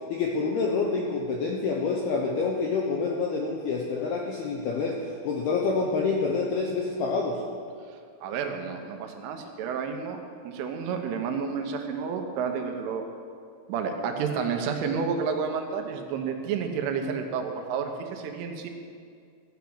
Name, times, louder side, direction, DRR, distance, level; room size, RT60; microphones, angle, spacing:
voice 1, 0.1-7.4, left 4 dB, 80° left, 0 dB, 2.3 m, -27 dB
voice 2, 8.2-13.0 13.7-18.7, right 6 dB, 80° right, 4 dB, 3.5 m, -30 dB
15.5 x 7.1 x 7.8 m, 2.2 s
omnidirectional pair, 5.7 m